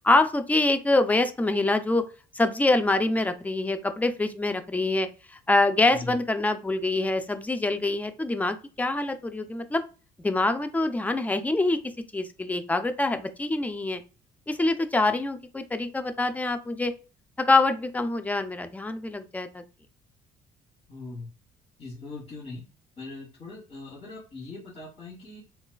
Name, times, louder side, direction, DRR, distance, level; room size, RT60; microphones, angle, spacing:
voice 1, 0.0-2.0 2.3-9.8 10.2-11.8 12.1-14.0 14.5-16.9 17.4-19.6, left 2 dB, 10° left, 9 dB, 0.4 m, -25 dB
voice 2, 20.9-21.3 21.8-22.6 23.0-25.4, left 3 dB, 35° left, -6 dB, 1.5 m, -40 dB
4.0 x 2.3 x 2.2 m, 0.33 s
cardioid pair, 110°, 17 cm